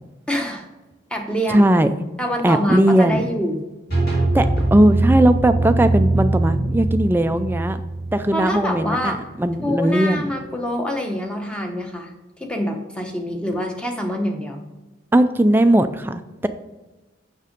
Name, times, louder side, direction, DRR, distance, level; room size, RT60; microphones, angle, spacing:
voice 1, 0.3-0.7 1.1-1.7 2.2-3.6 8.3-9.2 9.6-12.1 12.4-14.7, equal, 5° left, 2 dB, 0.9 m, -25 dB
voice 2, 1.5-1.9 2.4-3.2 4.2-7.8 8.1-10.3 15.1-16.5, right 1 dB, 10° right, 9 dB, 0.3 m, -18 dB
sound 1, 3.9-9.6, right 2 dB, 50° left, 2.2 m, -22 dB
6.7 x 6.1 x 5.1 m, 1.1 s
head